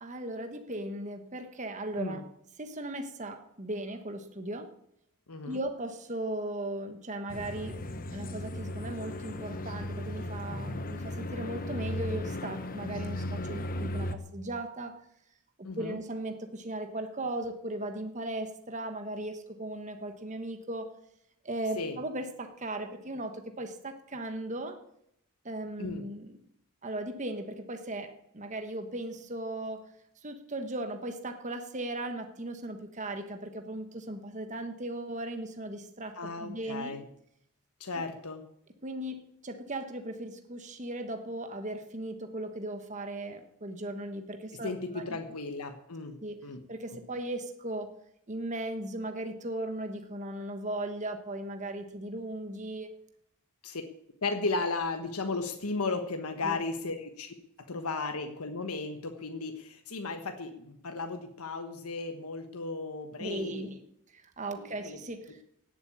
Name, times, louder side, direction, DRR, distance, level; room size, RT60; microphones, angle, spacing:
voice 1, 0.0-2.2 2.6-4.7 5.5-7.8 8.1-15.0 15.6-20.9 21.4-24.8 25.4-26.4 26.8-29.9 30.2-37.0 38.8-45.2 46.2-46.4 46.7-47.9 48.3-52.9 56.4-56.6 63.2-63.8 64.1-65.4, right 1 dB, 35° right, 6 dB, 1.3 m, -37 dB
voice 2, 5.3-5.6 15.6-16.0 21.8-22.0 25.8-26.0 36.2-37.0 37.8-38.4 44.5-46.2 46.4-46.6 53.6-53.8 54.2-63.7 64.6-65.0, left 3 dB, 85° left, 6 dB, 1.3 m, -35 dB
sound 1, 7.3-14.2, left 1 dB, 40° left, 1.1 m, -36 dB
17.0 x 8.0 x 8.5 m, 0.77 s
head